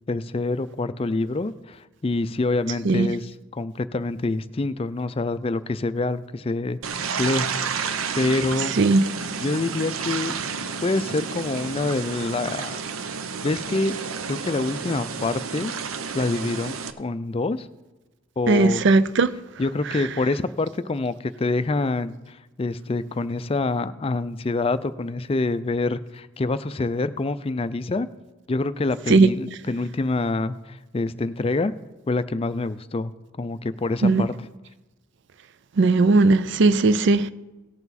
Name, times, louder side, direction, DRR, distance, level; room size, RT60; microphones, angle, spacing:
voice 1, 0.1-6.8 7.2-7.5 8.2-8.8 9.4-10.3 10.8-12.8 13.4-13.9 14.3-15.7 16.1-17.7 18.4-18.8 19.6-28.1 28.5-31.7 32.1-33.1 33.4-34.5, left 3 dB, 25° left, 0.4 m, -26 dB
sound 1, 6.8-16.9, right 6 dB, 85° right, 0.8 m, -31 dB
voice 2, 18.5-19.3 29.1-29.3 34.0-34.3 35.8-37.3, right 3 dB, 55° right, 0.5 m, -17 dB
18.0 x 6.9 x 4.1 m
head